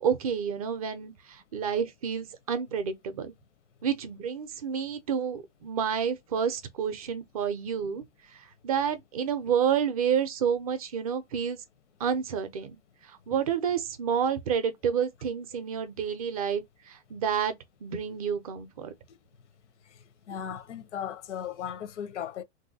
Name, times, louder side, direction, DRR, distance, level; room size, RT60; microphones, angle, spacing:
voice 1, 0.0-3.3 3.8-8.0 8.6-11.6 12.0-12.8 13.3-16.6 16.9-17.5 17.8-18.9, right 7 dB, 30° right, 0.5 m, -29 dB
voice 2, 19.9-22.4, left 9 dB, 80° left, 0.7 m, -37 dB
3.1 x 2.6 x 2.6 m
hypercardioid pair, 155°, 35 cm